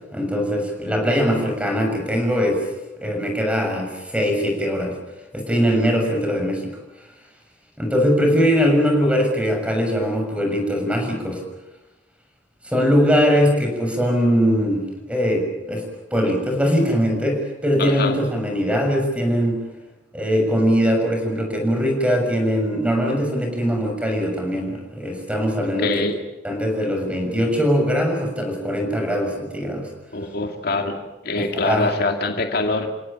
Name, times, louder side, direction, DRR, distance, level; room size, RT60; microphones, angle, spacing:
voice 1, 0.1-2.7 3.0-4.9 5.3-6.7 7.8-11.4 12.6-15.8 16.1-19.6 20.1-25.9 26.4-29.9 31.4-31.9, equal, 5° right, 2 dB, 6.7 m, -21 dB
voice 2, 17.8-18.2 25.6-26.2 30.1-31.0 31.2-32.9, left 3 dB, 60° left, 4 dB, 2.4 m, -24 dB
30.0 x 17.5 x 8.8 m, 1.0 s
head